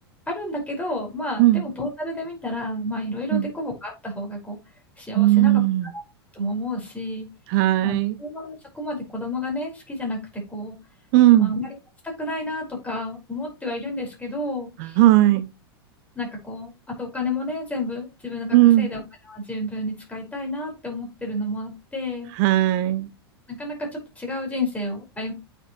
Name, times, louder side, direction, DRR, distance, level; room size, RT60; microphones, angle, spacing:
voice 1, 0.3-4.6 5.0-5.6 5.9-6.0 6.3-7.3 7.8-10.7 11.4-11.8 12.0-15.0 16.2-22.3 23.5-25.3, left 1 dB, 10° left, 5.2 m, -31 dB
voice 2, 5.1-5.9 7.5-8.2 11.1-11.5 14.8-15.5 18.5-18.9 22.4-23.1, right 15 dB, 50° right, 0.7 m, -17 dB
8.8 x 6.8 x 3.1 m
hypercardioid pair, 95°, 13 cm